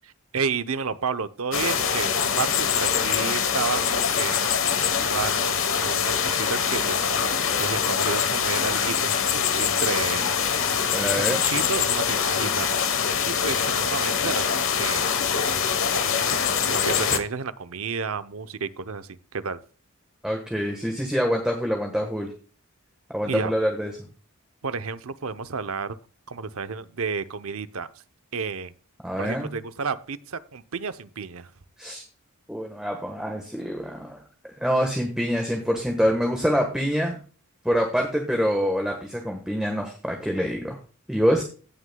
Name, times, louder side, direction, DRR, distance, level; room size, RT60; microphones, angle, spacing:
voice 1, 0.0-4.5 5.0-7.1 7.6-10.7 11.0-12.7 13.3-15.1 15.9-19.6 23.3-23.5 24.6-26.0 26.3-27.9 28.3-28.7 29.2-31.5, right 5 dB, 70° right, 12 dB, 0.7 m, -31 dB
sound 1, 1.5-17.2, left 7 dB, 60° left, 1.2 m, -24 dB
voice 2, 10.9-11.4 20.2-22.3 23.1-23.9 29.0-29.5 31.8-32.0 32.5-34.2 34.6-37.2 37.6-40.8 41.1-41.4, equal, 5° right, 2 dB, 1.3 m, -25 dB
17.0 x 6.4 x 2.3 m, 0.38 s
head